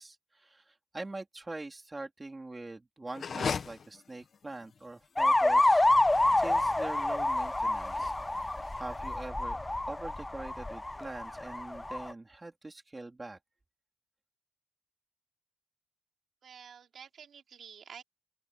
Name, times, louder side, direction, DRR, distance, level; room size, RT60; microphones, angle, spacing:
voice 1, 0.0-8.1 8.4-8.5 8.8-9.6 9.9-13.4, right 2 dB, 20° right, 3.6 m, -44 dB
sound 1, 3.1-9.2, left 6 dB, 55° left, 1.2 m, -41 dB
sound 2, 5.2-12.1, left 2 dB, 15° left, 0.4 m, -28 dB
voice 2, 16.4-18.0, right 7 dB, 70° right, 4.2 m, -50 dB
open air
wide cardioid pair, 125°, 0 cm